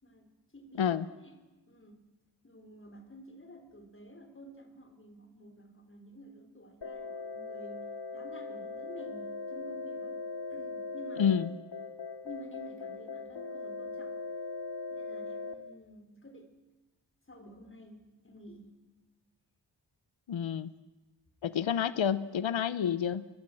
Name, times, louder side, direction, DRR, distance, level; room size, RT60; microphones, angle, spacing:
voice 1, 0.0-2.0 2.4-10.2 10.5-11.4 12.2-14.2 14.9-16.6 17.3-18.8, equal, 25° left, 7 dB, 4.0 m, -51 dB
sound 1, 6.8-15.5, left 3 dB, 60° left, 2.5 m, -40 dB
voice 2, 11.2-11.5 20.3-20.7 21.4-23.3, left 8 dB, 90° left, 15 dB, 0.8 m, -29 dB
29.0 x 22.0 x 7.7 m, 1.1 s
wide cardioid pair, 105°, 45 cm